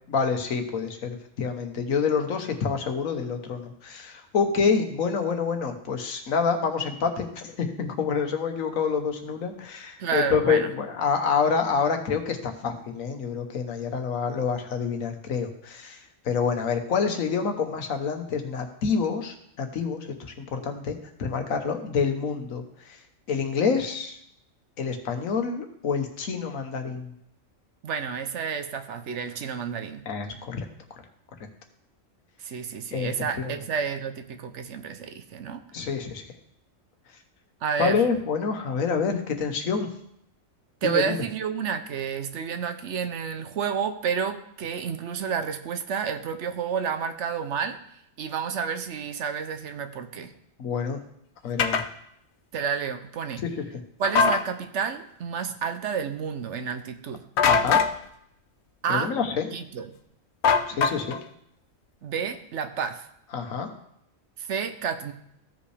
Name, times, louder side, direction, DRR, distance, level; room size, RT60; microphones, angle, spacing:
voice 1, 0.1-16.0 16.2-23.0 23.3-24.2 24.8-27.1 30.1-30.7 32.9-33.5 35.7-36.2 37.8-39.9 40.8-41.2 50.6-51.0 51.4-51.8 53.4-53.5 57.4-57.8 58.9-59.5 60.7-61.2 63.3-63.7, left 5 dB, 85° left, 6 dB, 1.4 m, -27 dB
voice 2, 10.0-10.7 27.8-30.1 32.4-35.6 37.6-38.0 40.8-47.8 48.2-50.3 52.5-53.4 54.0-57.2 58.8-59.1 59.5-59.9 62.0-63.1 64.4-65.1, right 6 dB, 65° right, 9 dB, 0.9 m, -30 dB
sound 1, 51.6-51.9 54.0-54.4 57.4-57.9 60.4-61.2, left 5 dB, 65° left, 0.8 m, -21 dB
15.0 x 5.2 x 3.3 m, 0.73 s
omnidirectional pair, 1.4 m